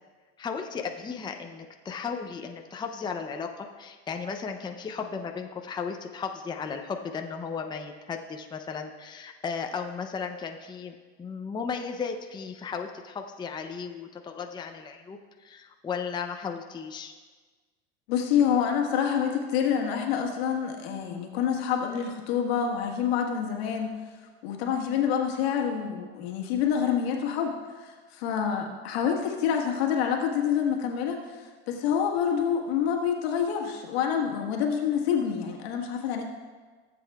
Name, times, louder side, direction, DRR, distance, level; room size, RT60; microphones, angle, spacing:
voice 1, 0.4-17.1, left 5 dB, 15° left, 4 dB, 0.6 m, -35 dB
voice 2, 18.1-24.0 24.4-27.5 27.8-36.2, left 8 dB, 80° left, 1 dB, 1.5 m, -27 dB
16.0 x 7.7 x 2.4 m, 1.4 s
supercardioid pair, 105°, 31 cm